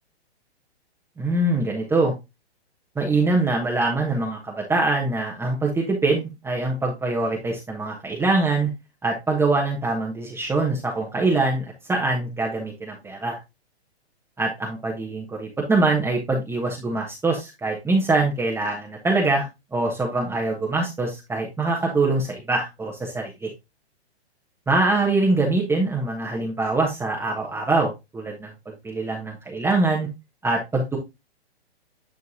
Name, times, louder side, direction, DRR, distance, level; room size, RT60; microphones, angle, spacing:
voice 1, 1.2-2.1 2.9-8.7 9.0-13.4 14.4-23.5 24.7-30.1 30.4-31.0, right 2 dB, 5° right, -1 dB, 1.3 m, -24 dB
9.8 x 4.5 x 2.8 m, 0.22 s
hypercardioid pair, 125°, 33 cm